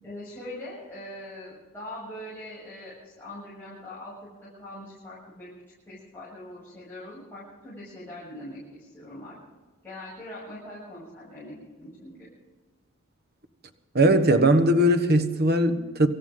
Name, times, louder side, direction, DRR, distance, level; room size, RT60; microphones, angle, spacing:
voice 1, 0.0-4.1 4.4-5.5 5.9-9.4 9.8-12.1, left 1 dB, 10° left, -9 dB, 7.3 m, -42 dB
voice 2, 13.9-16.1, right 1 dB, 45° right, 8 dB, 1.2 m, -20 dB
26.0 x 14.0 x 3.8 m, 1.3 s
head